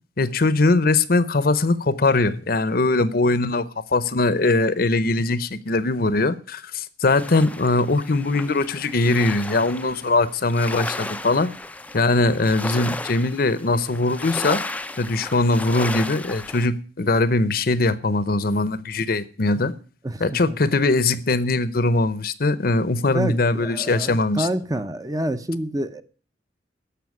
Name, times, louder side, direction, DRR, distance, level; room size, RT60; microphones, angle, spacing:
voice 1, 0.2-3.7 3.9-11.5 11.9-14.6 15.0-19.7 20.2-24.5, left 2 dB, 55° left, 0.8 m, -21 dB
sound 1, 7.1-16.7, left 2 dB, 10° left, 0.5 m, -34 dB
voice 2, 20.0-20.6 23.1-26.0, right 1 dB, 20° right, 0.8 m, -28 dB
13.5 x 5.7 x 9.4 m
head